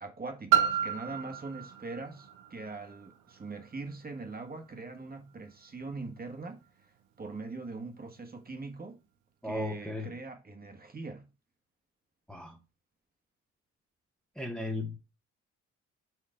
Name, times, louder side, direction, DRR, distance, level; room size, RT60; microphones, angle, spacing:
voice 1, 0.0-6.6 7.2-9.0 9.4-11.3, right 3 dB, 30° right, 1.5 m, -42 dB
Piano, 0.5-5.9 6.7-6.8, right 10 dB, 85° right, 0.8 m, -33 dB
voice 2, 9.4-10.1 12.3-12.6 14.4-15.0, left 2 dB, 5° left, 1.1 m, -35 dB
5.2 x 4.7 x 5.0 m
cardioid pair, 80°, 30 cm